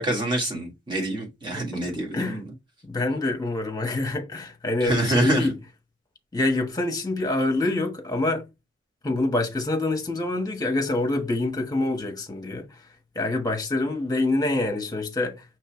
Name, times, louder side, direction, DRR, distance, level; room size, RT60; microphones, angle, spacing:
voice 1, 0.0-2.5 4.8-5.5, right 1 dB, 25° right, 1.7 m, -26 dB
voice 2, 1.5-2.4 2.8-5.5 6.3-8.5 9.0-12.7 13.1-15.4, left 2 dB, 20° left, 1.1 m, -26 dB
5.4 x 3.2 x 3.1 m
head